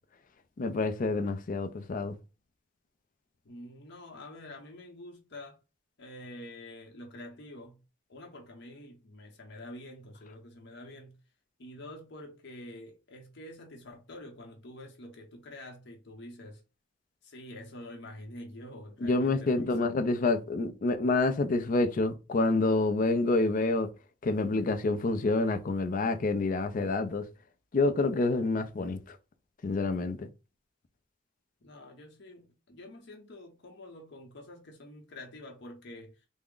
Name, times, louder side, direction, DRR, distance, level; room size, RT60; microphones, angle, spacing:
voice 1, 0.6-2.2 19.0-23.9 24.2-27.2 27.7-29.2 29.6-30.3, left 3 dB, 45° left, 0.4 m, -28 dB
voice 2, 3.4-5.6 6.0-7.8 8.1-11.2 11.6-16.6 17.2-19.9 31.6-36.2, left 1 dB, 60° left, 0.8 m, -47 dB
3.4 x 2.1 x 3.7 m
head